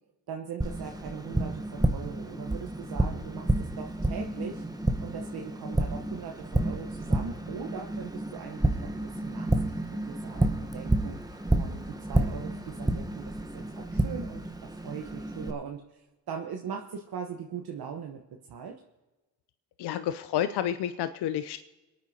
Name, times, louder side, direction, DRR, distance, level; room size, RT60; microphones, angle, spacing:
voice 1, 0.3-4.6 5.0-11.2 11.5-18.2 18.5-18.8, right 7 dB, 60° right, 2 dB, 1.2 m, -40 dB
Tap, 0.6-15.5, right 1 dB, 10° right, 1.1 m, -30 dB
voice 2, 19.8-21.6, left 10 dB, 70° left, 12 dB, 0.7 m, -30 dB
27.5 x 9.2 x 2.8 m, 1.1 s
supercardioid pair, 50°, 42 cm